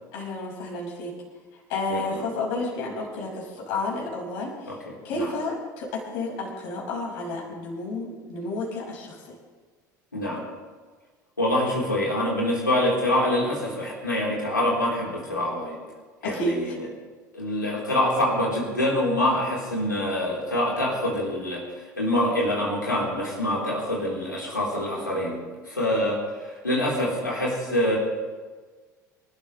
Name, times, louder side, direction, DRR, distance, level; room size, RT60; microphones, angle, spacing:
voice 1, 0.1-1.1 1.7-4.8 5.0-5.9 6.1-9.2 16.2-16.5, left 2 dB, 60° left, -2 dB, 5.9 m, -31 dB
voice 2, 1.9-2.3 4.6-5.3 10.1-10.4 11.4-15.8 16.2-16.9 17.3-28.0, left 1 dB, 90° left, -4 dB, 4.0 m, -26 dB
26.5 x 13.0 x 3.4 m, 1.4 s
figure-of-eight pair, 65°, 10 cm